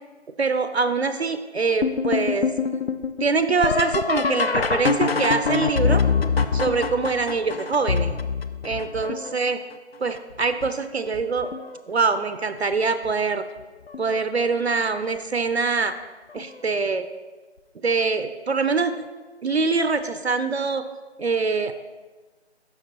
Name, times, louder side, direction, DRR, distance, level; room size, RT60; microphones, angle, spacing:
voice 1, 0.4-2.5 3.2-6.0 6.5-8.1 8.6-9.6 10.0-11.5 11.9-13.4 14.0-16.0 16.3-17.1 17.8-19.0 19.4-20.9 21.2-21.7, right 4 dB, 65° right, 10 dB, 0.5 m, -24 dB
sound 1, 1.8-9.5 10.2-10.7 11.1-11.8 13.0-13.1 13.9-14.2 16.4-16.5 18.8-18.9, left 5 dB, 60° left, 0.5 m, -25 dB
12.0 x 4.5 x 2.8 m, 1.3 s
figure-of-eight pair, 165°, 34 cm